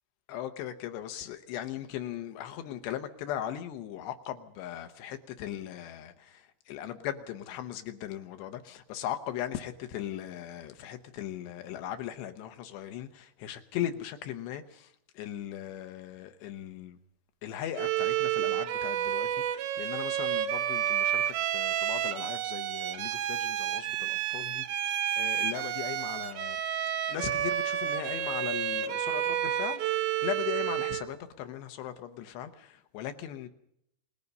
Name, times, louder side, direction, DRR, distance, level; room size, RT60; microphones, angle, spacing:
voice 1, 0.3-17.0 17.4-26.6 27.1-33.5, left 11 dB, 75° left, 3.2 m, -38 dB
Bowed string instrument, 17.7-31.1, right 11 dB, 70° right, 2.4 m, -30 dB
28.0 x 20.0 x 5.5 m
omnidirectional pair, 5.2 m